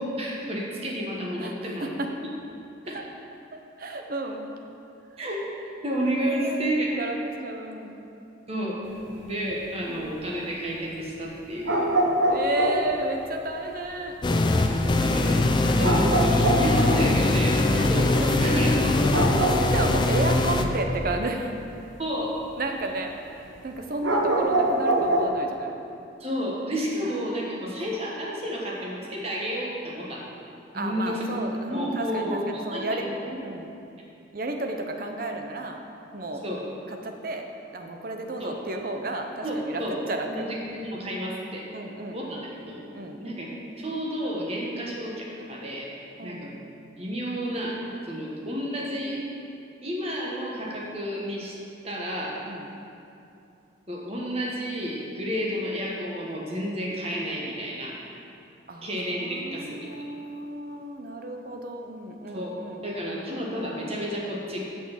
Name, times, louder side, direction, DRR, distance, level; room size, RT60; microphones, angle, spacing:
voice 1, 0.0-1.9 2.9-3.0 5.2-5.4 5.8-6.9 8.5-8.8 9.1-11.9 14.6-19.5 22.0-22.4 26.2-30.3 30.7-31.4 31.6-33.4 36.4-36.7 38.4-38.5 39.4-40.0 40.3-41.8 42.1-42.8 43.2-45.9 46.2-46.5 47.0-49.2 49.8-51.5 51.8-52.4 53.9-58.0 58.8-60.1 62.3-62.6 62.8-64.6, equal, 30° right, -3 dB, 1.4 m, -31 dB
voice 2, 1.4-2.1 2.8-3.0 3.5-4.4 6.2-7.9 9.9-10.1 12.3-14.2 15.5-16.2 17.7-18.7 19.2-19.4 19.7-21.5 22.6-25.7 26.9-27.1 27.5-27.8 30.7-33.1 33.4-33.7 34.3-35.8 36.1-36.4 36.9-37.5 37.7-40.5 41.7-42.5 42.9-43.2 46.2-46.5 52.5-52.7 58.7-63.2, right 2 dB, 50° right, 4 dB, 0.7 m, -33 dB
sound 1, 8.9-9.2 11.7-13.0 15.8-17.1 19.1-20.2 24.0-25.3, right 1 dB, 90° right, 1.0 m, -24 dB
sound 2, 14.2-20.7, left 2 dB, 25° left, 0.3 m, -22 dB
6.3 x 6.2 x 7.3 m, 2.6 s
head